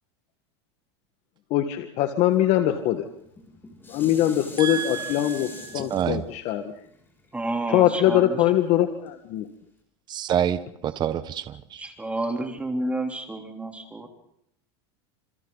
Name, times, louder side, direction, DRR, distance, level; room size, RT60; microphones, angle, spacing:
voice 1, 1.5-3.1 3.9-6.7 7.7-9.5, left 12 dB, 50° left, 7 dB, 1.8 m, -22 dB
Dishes pots and pans, 3.2-8.5 9.1-9.2, left 2 dB, 15° left, 7.2 m, -44 dB
voice 2, 4.6-5.5 5.9-6.2 10.1-11.9, right 9 dB, 30° right, 12 dB, 1.2 m, -28 dB
voice 3, 7.3-8.2 11.8-14.1, right 2 dB, 10° right, 3 dB, 3.6 m, -30 dB
29.5 x 27.5 x 4.1 m, 0.73 s
supercardioid pair, 135°, 14 cm